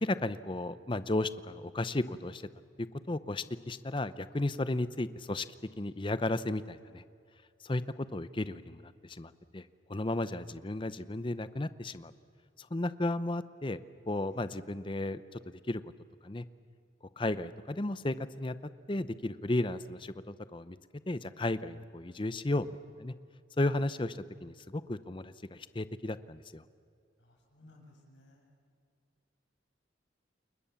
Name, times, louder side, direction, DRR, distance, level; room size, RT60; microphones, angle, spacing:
voice 1, 0.0-2.4 2.8-5.5 5.8-7.0 7.6-12.1 12.6-13.8 14.1-15.8 16.2-16.4 17.2-18.6 18.9-20.8 21.1-22.7 23.0-23.1 23.6-26.6, left 2 dB, 25° left, 14 dB, 0.7 m, -34 dB
voice 2, 27.2-28.4, left 1 dB, 70° left, 0 dB, 7.5 m, -59 dB
29.5 x 21.5 x 7.1 m, 2.4 s
head